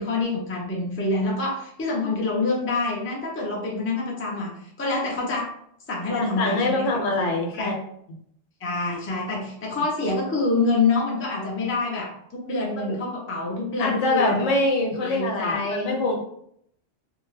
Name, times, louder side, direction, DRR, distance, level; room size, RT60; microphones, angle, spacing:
voice 1, 0.0-5.5 5.9-6.9 7.5-7.7 8.6-14.5 15.0-16.0, left 3 dB, 20° left, -2 dB, 0.4 m, -26 dB
voice 2, 6.1-7.8 9.7-9.8 12.8-13.0 13.8-16.2, left 2 dB, 85° left, 0 dB, 1.1 m, -24 dB
2.7 x 2.2 x 3.2 m, 0.70 s
omnidirectional pair, 1.3 m